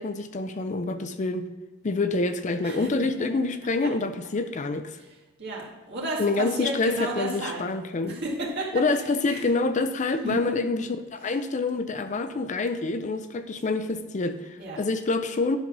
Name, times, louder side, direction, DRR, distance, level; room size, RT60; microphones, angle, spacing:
voice 1, 0.0-1.5 1.8-5.0 6.2-8.2 8.7-15.6, left 3 dB, 35° left, 9 dB, 0.4 m, -27 dB
voice 2, 5.4-7.6 8.1-8.7 9.3-9.5 10.2-10.4 14.6-14.8, right 1 dB, 55° right, -3 dB, 2.0 m, -33 dB
10.5 x 4.0 x 6.0 m, 1.2 s
head